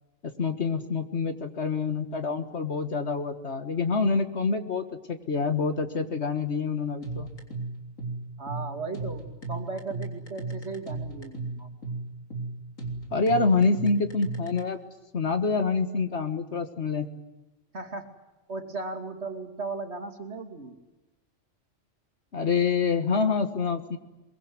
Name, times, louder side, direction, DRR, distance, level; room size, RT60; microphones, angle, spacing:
voice 1, 0.2-7.3 13.1-14.8 15.1-17.1 22.3-24.0, left 4 dB, 60° left, 8 dB, 1.9 m, -26 dB
sound 1, 7.0-14.6, right 3 dB, 80° left, 4.0 m, -35 dB
voice 2, 8.4-11.7 17.7-18.1 18.5-20.8, right 3 dB, 55° right, 6 dB, 2.8 m, -36 dB
23.0 x 23.0 x 9.5 m, 1.0 s
omnidirectional pair, 1.3 m